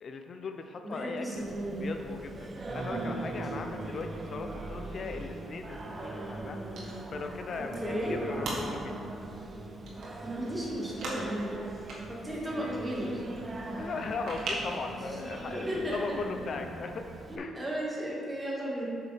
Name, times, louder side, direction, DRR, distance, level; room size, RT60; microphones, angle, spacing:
voice 1, 0.0-6.6 7.1-9.0 13.8-17.0 17.4-17.6, left 4 dB, 50° left, 6 dB, 0.5 m, -38 dB
voice 2, 0.8-1.9 7.6-8.2 10.2-11.6 12.1-13.4 15.7-16.2 17.3-19.0, equal, 15° right, -5 dB, 1.9 m, -35 dB
Singing, 1.3-17.4, right 2 dB, 35° right, 0.8 m, -40 dB
sound 1, 6.7-14.9, right 2 dB, 70° right, 1.7 m, -42 dB
7.4 x 6.7 x 3.5 m, 2.4 s
cardioid pair, 90°, 0 cm